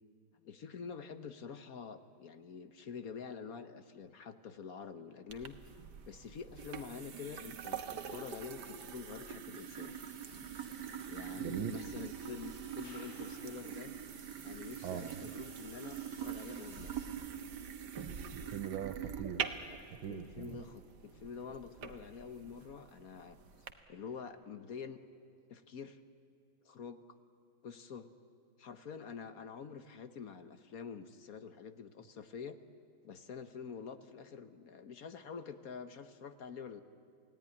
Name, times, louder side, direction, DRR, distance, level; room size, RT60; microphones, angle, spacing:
voice 1, 0.4-5.6 6.1-10.0 11.1-13.9 14.4-17.0 20.1-23.4 23.9-25.0 25.5-26.0 26.6-27.0 27.6-28.1 28.6-32.6 33.0-36.8, left 6 dB, 55° left, 10 dB, 1.2 m, -47 dB
sound 1, 5.3-23.7, right 8 dB, 60° right, 1.7 m, -44 dB
sound 2, 9.5-17.1, left 2 dB, 70° left, 4.7 m, -61 dB
voice 2, 11.4-11.8 14.8-15.2 18.3-19.5 20.0-20.6, right 10 dB, 80° right, 11 dB, 1.8 m, -41 dB
28.5 x 17.5 x 9.8 m, 2.6 s
omnidirectional pair, 2.2 m